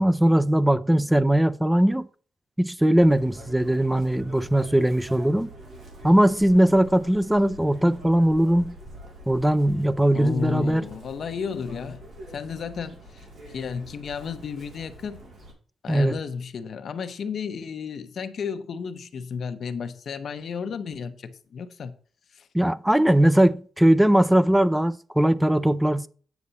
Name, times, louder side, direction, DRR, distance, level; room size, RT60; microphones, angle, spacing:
voice 1, 0.0-2.1 2.6-5.5 6.0-8.8 9.3-10.8 15.9-16.2 22.5-26.1, right 1 dB, 5° right, 0.5 m, -20 dB
Chirp tweet, 3.0-15.5, right 1 dB, 55° right, 3.9 m, -45 dB
voice 2, 10.1-12.0 12.3-15.2 15.8-21.9 22.3-22.5, left 6 dB, 50° left, 1.0 m, -33 dB
9.4 x 6.8 x 4.1 m
wide cardioid pair, 145°, 0 cm